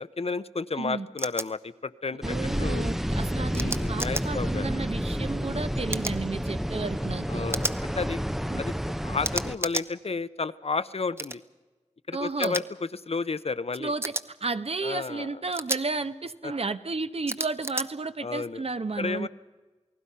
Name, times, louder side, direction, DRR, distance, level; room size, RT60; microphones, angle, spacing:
voice 1, 0.0-2.8 3.5-4.6 7.3-8.7 9.0-11.4 12.1-13.9 14.8-15.4 16.4-16.5 18.2-18.6 19.0-19.3, left 4 dB, 55° left, 14 dB, 0.7 m, -32 dB
sound 1, 1.2-1.5 3.5-4.2 5.9-6.2 7.5-7.8 9.2-9.9 11.2-11.4 12.4-12.6 14.0-14.2 15.5-15.8 17.3-17.9, right 1 dB, 20° right, 0.9 m, -31 dB
sound 2, 2.2-9.6, equal, ahead, 0.6 m, -30 dB
voice 2, 2.2-7.5 8.5-8.6 12.1-12.6 13.8-14.1 14.4-19.3, right 3 dB, 55° right, 11 dB, 1.0 m, -32 dB
28.5 x 19.0 x 5.6 m, 1.3 s
wide cardioid pair, 60°, 12 cm